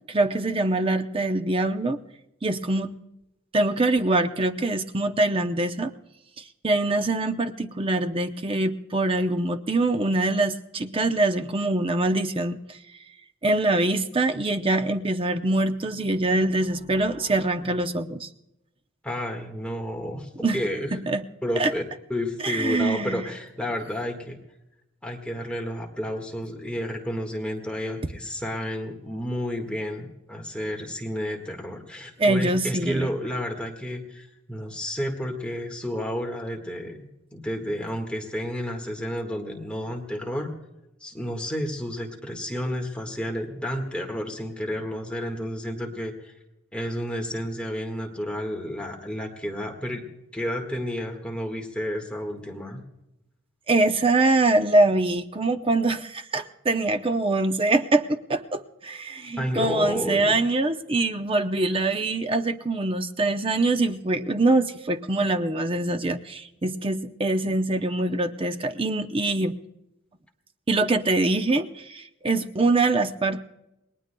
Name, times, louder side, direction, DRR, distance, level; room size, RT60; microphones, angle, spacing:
voice 1, 0.1-2.0 2.4-3.0 3.5-5.9 6.4-12.8 13.4-18.3 20.4-20.6 20.9-21.2 21.6-21.7 22.4-23.2 32.2-33.1 53.7-69.5 70.7-73.4, right 2 dB, 25° right, 7 dB, 0.7 m, -24 dB
voice 2, 19.0-20.9 21.4-21.8 22.1-24.4 25.0-40.5 41.0-46.3 46.7-50.0 50.3-52.8 59.4-60.4, equal, 5° left, 1 dB, 1.6 m, -31 dB
28.5 x 20.5 x 2.3 m, 0.91 s
head